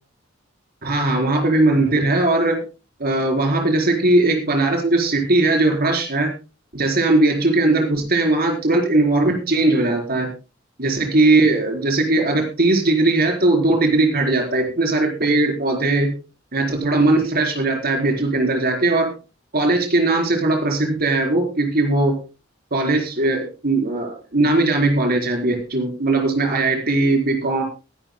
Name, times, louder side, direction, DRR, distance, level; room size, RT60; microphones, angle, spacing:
voice 1, 0.8-2.6 3.0-6.3 6.7-10.3 10.8-16.2 16.5-19.1 19.5-22.2 22.7-27.6, right 2 dB, 50° right, 3 dB, 4.2 m, -19 dB
21.5 x 11.5 x 2.2 m, 0.29 s
head